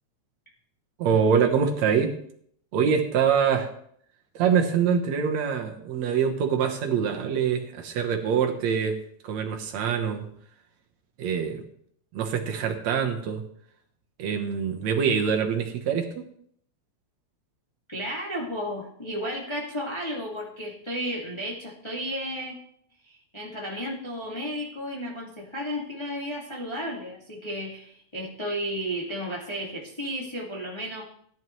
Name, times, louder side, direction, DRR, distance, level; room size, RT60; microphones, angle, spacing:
voice 1, 1.0-2.1 2.7-3.7 4.4-9.0 9.2-10.3 11.2-11.6 12.1-13.4 14.2-16.2, right 7 dB, 70° right, 3 dB, 2.3 m, -24 dB
voice 2, 17.9-22.6 23.0-31.0, equal, 10° left, -3 dB, 1.6 m, -33 dB
17.0 x 11.0 x 3.1 m, 0.65 s
omnidirectional pair, 3.4 m